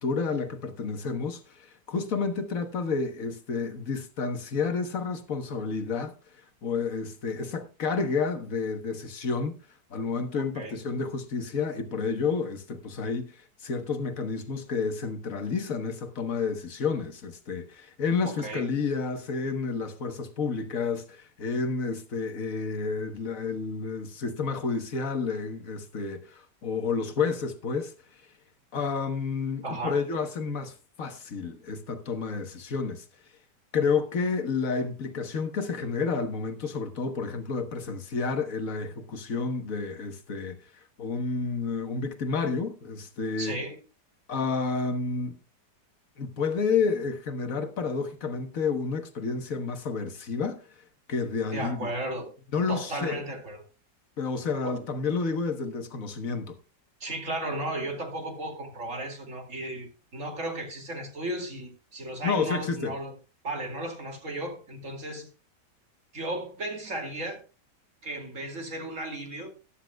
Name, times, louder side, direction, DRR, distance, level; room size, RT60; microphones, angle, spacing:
voice 1, 0.0-6.1 6.6-9.5 9.9-27.9 28.7-33.0 33.7-40.6 41.0-43.6 44.3-45.4 46.2-50.6 51.1-51.9 52.5-53.2 54.2-56.6 62.2-62.9, left 5 dB, 50° left, 1.5 m, -30 dB
voice 2, 18.2-18.7 29.6-30.0 43.4-43.7 51.5-52.3 52.7-53.6 54.6-54.8 57.0-63.1 63.4-65.3 66.1-67.4 68.0-69.5, right 1 dB, 45° right, 2.7 m, -35 dB
14.0 x 11.5 x 2.3 m
omnidirectional pair, 1.9 m